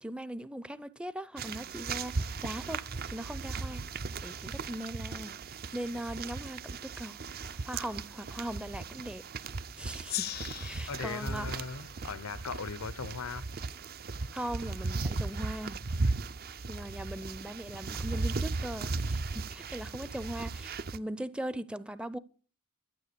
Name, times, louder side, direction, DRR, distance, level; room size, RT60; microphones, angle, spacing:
voice 1, 0.0-3.9 4.2-5.4 5.7-9.2 9.8-10.3 10.6-11.6 14.3-15.8 16.7-22.2, right 1 dB, 5° right, 0.5 m, -40 dB
sound 1, 1.4-21.0, right 3 dB, 45° right, 0.6 m, -37 dB
Gong, 10.1-13.2, left 13 dB, 45° left, 0.5 m, -41 dB
voice 2, 10.9-13.5, left 5 dB, 85° left, 0.7 m, -38 dB
12.0 x 8.8 x 6.8 m
head